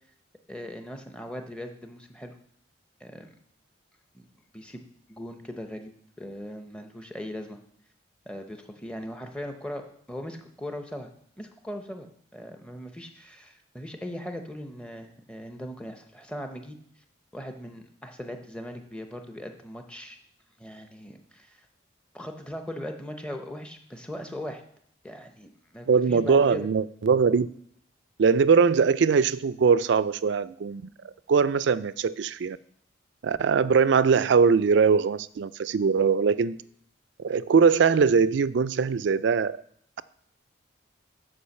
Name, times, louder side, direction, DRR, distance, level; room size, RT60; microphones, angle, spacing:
voice 1, 0.5-2.3 3.0-3.3 4.1-4.2 4.5-4.8 5.1-5.9 6.2-7.6 8.3-11.1 11.4-16.8 17.3-20.2 20.6-21.7 22.1-24.6 25.0-26.7, left 1 dB, 5° left, 5 dB, 0.7 m, -39 dB
voice 2, 25.9-27.5 28.2-32.6 33.2-36.6 37.2-39.6, right 5 dB, 70° right, 17 dB, 0.4 m, -21 dB
8.6 x 4.9 x 6.5 m, 0.67 s
head